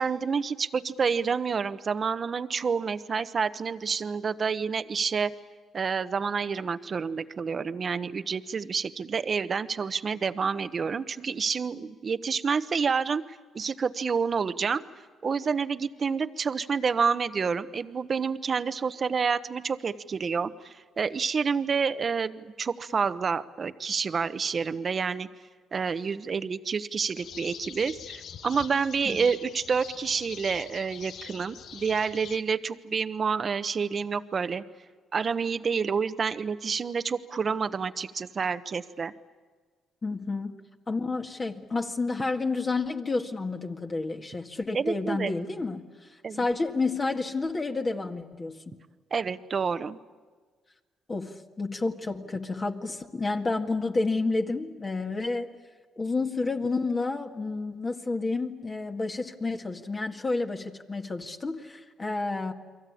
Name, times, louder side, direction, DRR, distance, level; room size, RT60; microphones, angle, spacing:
voice 1, 0.0-5.3 5.7-14.8 15.2-25.3 25.7-34.6 35.1-39.1 44.7-45.3 46.2-46.4 49.1-50.0, right 5 dB, 45° right, 12 dB, 1.1 m, -28 dB
sound 1, 27.1-32.4, left 8 dB, 70° left, 1.1 m, -44 dB
voice 2, 40.0-45.8 46.1-48.8 51.1-55.5 56.0-62.5, left 3 dB, 30° left, 3 dB, 1.9 m, -30 dB
30.0 x 23.0 x 8.6 m, 1.5 s
cardioid pair, 90°, 0 cm